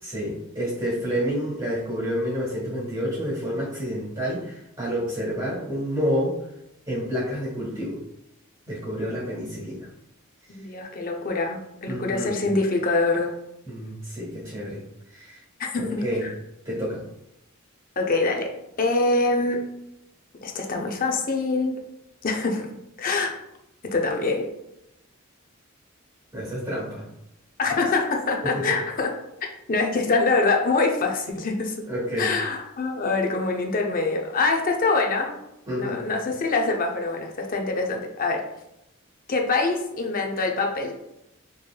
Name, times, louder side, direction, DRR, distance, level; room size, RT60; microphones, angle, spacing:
voice 1, 0.0-6.3 6.9-8.0 8.7-9.9 11.8-12.4 13.6-14.8 15.1-15.4 15.8-16.3 16.6-17.1 26.3-27.1 28.4-28.6 31.9-32.3 35.7-36.0, equal, 20° right, -6 dB, 1.4 m, -29 dB
voice 2, 10.5-13.3 15.6-16.3 18.0-19.7 20.4-21.8 22.2-22.7 23.0-23.4 23.8-24.5 27.6-29.2 29.7-31.7 32.2-35.4 35.8-38.5 39.3-40.9, left 3 dB, 40° left, 2 dB, 0.6 m, -24 dB
4.5 x 3.2 x 2.2 m, 0.85 s
head